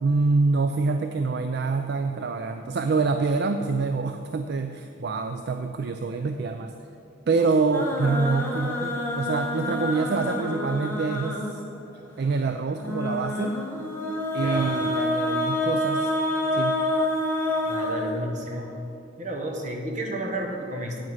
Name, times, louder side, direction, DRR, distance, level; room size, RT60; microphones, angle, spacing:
voice 1, 0.0-6.7 7.3-11.4 12.2-13.6 14.3-16.1 16.5-16.8, right 4 dB, 55° right, 7 dB, 0.4 m, -26 dB
sound 1, 7.7-11.7 12.8-18.6, left 1 dB, 10° left, 1.1 m, -28 dB
voice 2, 14.4-14.7 17.7-18.7 19.2-21.0, right 1 dB, 40° right, 1 dB, 1.3 m, -32 dB
8.9 x 7.8 x 5.6 m, 2.6 s
head